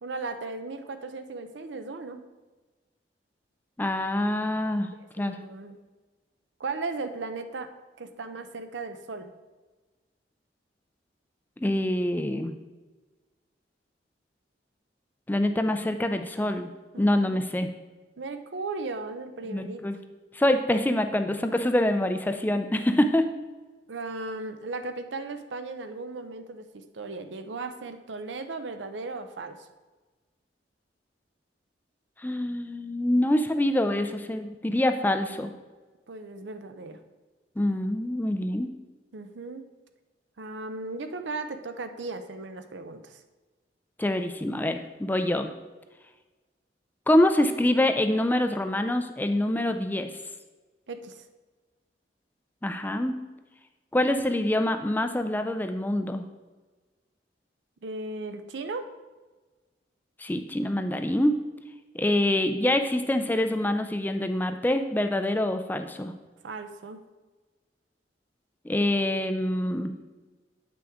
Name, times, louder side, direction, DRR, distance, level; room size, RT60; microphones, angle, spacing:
voice 1, 0.0-2.2 5.2-5.8 6.6-7.7 8.0-9.3 16.9-17.4 18.2-20.0 23.9-29.7 36.1-37.0 39.1-39.7 40.4-43.2 50.9-51.2 57.8-58.9 66.4-67.0, right 3 dB, 85° right, 8 dB, 0.6 m, -36 dB
voice 2, 3.8-5.4 11.6-12.5 15.3-16.7 17.0-17.7 19.5-19.9 20.3-23.3 32.2-35.5 37.6-38.7 44.0-45.5 47.1-50.1 52.6-53.2 53.9-56.3 60.2-61.3 61.9-66.1 68.6-70.0, left 1 dB, 10° left, 7 dB, 0.4 m, -25 dB
8.5 x 6.1 x 3.6 m, 1.2 s
head